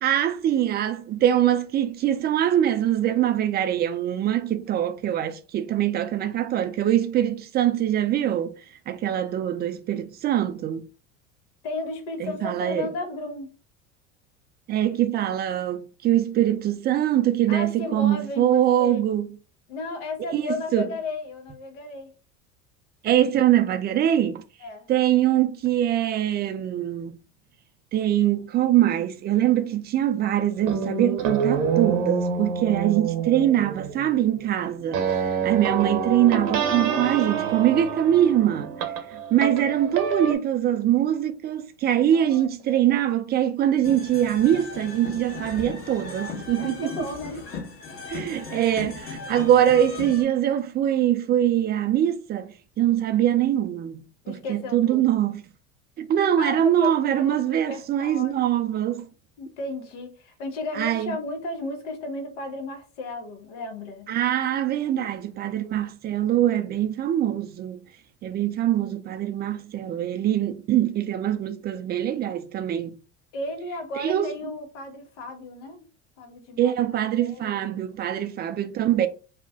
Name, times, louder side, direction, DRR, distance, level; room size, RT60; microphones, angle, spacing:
voice 1, 0.0-8.5 8.9-10.8 12.2-12.9 14.7-19.3 20.3-20.5 20.7-20.9 23.0-24.4 24.9-27.2 27.9-38.8 39.1-46.9 48.1-54.0 54.3-55.4 56.0-59.1 60.8-61.2 64.1-67.9 68.2-73.0 74.0-74.3 76.6-79.1, right 11 dB, 25° right, 0.4 m, -23 dB
voice 2, 11.6-13.5 17.5-19.0 19.7-22.1 24.6-24.9 42.1-42.8 46.6-47.4 54.2-55.0 56.4-58.3 59.4-64.1 73.3-75.9 76.2-76.7 77.0-77.5, left 2 dB, 70° left, 1.0 m, -34 dB
sound 1, 30.6-40.4, right 6 dB, 70° right, 0.8 m, -27 dB
sound 2, 43.8-50.2, left 4 dB, 35° left, 1.2 m, -37 dB
2.4 x 2.1 x 3.6 m
hypercardioid pair, 80°, 38 cm